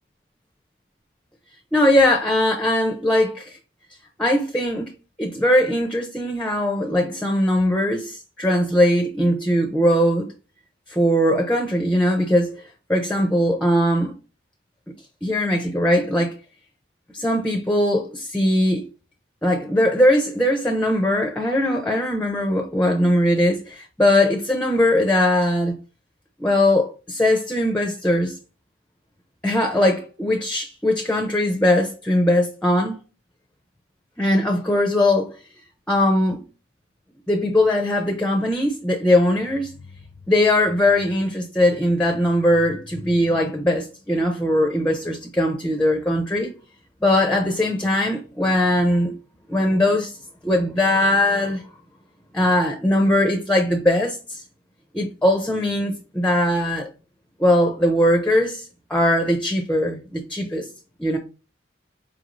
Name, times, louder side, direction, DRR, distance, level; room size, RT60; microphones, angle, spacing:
voice 1, 1.7-3.6 4.2-4.9 5.2-10.3 10.9-12.6 12.9-14.1 15.2-16.3 17.1-18.8 19.4-25.8 26.4-28.4 29.4-33.0 34.2-35.3 35.9-36.4 37.3-39.7 40.3-46.5 47.0-49.1 49.5-50.2 50.4-51.6 52.3-54.4 54.9-56.9 57.4-60.7 61.0-61.2, left 1 dB, 5° left, 0.4 m, -20 dB
4.9 x 3.0 x 2.5 m
head